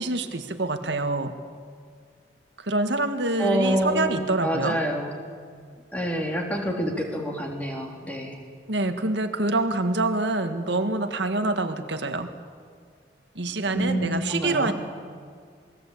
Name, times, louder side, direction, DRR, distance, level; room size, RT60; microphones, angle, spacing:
voice 1, 0.0-1.3 2.6-4.8 8.7-12.3 13.4-14.7, right 2 dB, 80° right, 7 dB, 1.8 m, -26 dB
voice 2, 3.4-5.1 5.9-8.4 13.7-14.7, equal, 10° left, 1 dB, 3.5 m, -27 dB
27.5 x 20.5 x 8.5 m, 2.1 s
head